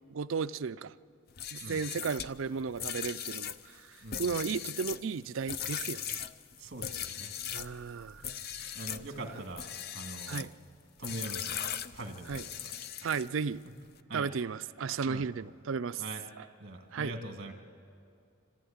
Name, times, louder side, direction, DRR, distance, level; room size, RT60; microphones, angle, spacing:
voice 1, 0.1-0.9 1.5-3.5 4.2-6.2 7.5-8.2 10.3-10.5 12.3-12.4 13.0-13.6 14.1-16.0 16.9-17.1, right 5 dB, 75° right, 14 dB, 0.5 m, -34 dB
sound 1, 1.3-7.7 8.2-9.1 9.5-10.5 11.0-13.4, left 9 dB, 50° left, 0.5 m, -39 dB
voice 2, 4.0-4.6 6.6-7.3 7.9-8.3 8.7-10.5 11.0-11.6 11.9-13.2 14.1-14.3 15.1-15.3 16.0-16.2 16.6-17.5, right 2 dB, 55° right, 4 dB, 2.2 m, -43 dB
26.0 x 15.0 x 8.8 m, 2.4 s
head